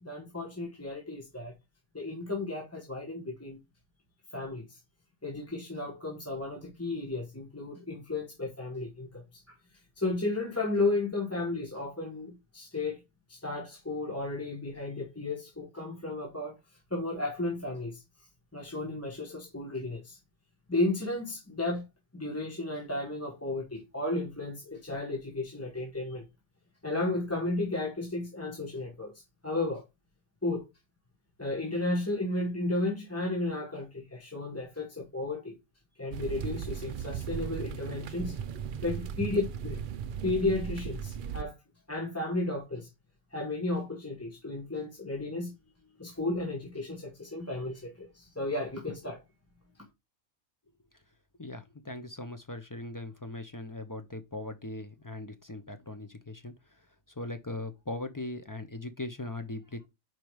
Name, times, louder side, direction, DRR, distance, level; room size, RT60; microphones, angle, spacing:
voice 1, 0.0-1.5 1.9-3.6 4.3-4.6 5.2-9.2 10.0-13.0 13.3-16.6 16.9-18.0 18.5-20.2 20.7-21.8 22.1-26.3 26.8-29.1 29.4-29.8 30.4-30.7 31.4-35.5 36.0-38.3 38.8-39.8 40.2-41.5 41.9-42.9 43.3-45.5 46.0-49.2, left 2 dB, 10° left, 1.1 m, -33 dB
sound 1, 36.1-41.4, right 7 dB, 70° right, 0.4 m, -37 dB
voice 2, 51.4-56.5 57.2-59.9, left 2 dB, 25° left, 0.4 m, -39 dB
5.3 x 4.6 x 4.6 m
omnidirectional pair, 1.4 m